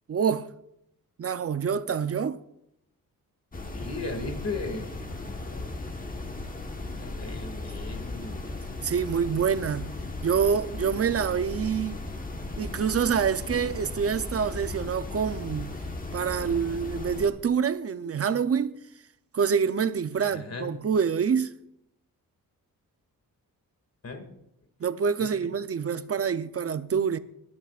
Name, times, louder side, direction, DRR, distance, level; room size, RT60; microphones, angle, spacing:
voice 1, 0.1-0.5 1.2-2.4 8.8-9.9 10.2-12.0 12.6-15.7 16.1-18.8 19.3-21.5 24.8-27.2, right 7 dB, 40° right, 0.7 m, -26 dB
sound 1, 3.5-17.3, left 2 dB, 25° left, 1.3 m, -36 dB
voice 2, 3.6-5.9 7.0-8.5 20.2-20.8 24.0-24.3 25.2-25.5, left 3 dB, 45° left, 2.3 m, -38 dB
20.5 x 12.0 x 2.5 m
wide cardioid pair, 105°, 34 cm